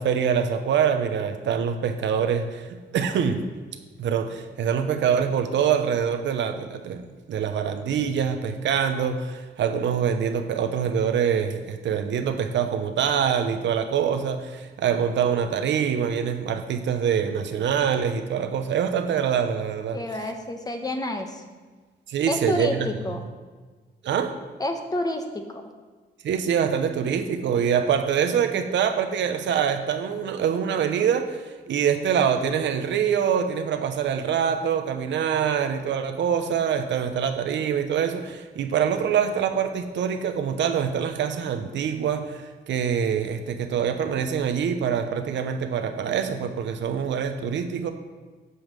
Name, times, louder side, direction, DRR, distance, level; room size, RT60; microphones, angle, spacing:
voice 1, 0.0-3.4 4.0-7.0 7.3-20.3 22.1-22.9 24.0-24.3 26.2-47.9, right 7 dB, 85° right, 8 dB, 0.9 m, -25 dB
voice 2, 19.9-21.4 22.3-23.2 24.6-25.6, left 1 dB, 20° left, 5 dB, 1.1 m, -29 dB
8.5 x 5.6 x 7.4 m, 1.4 s
cardioid pair, 125°, 18 cm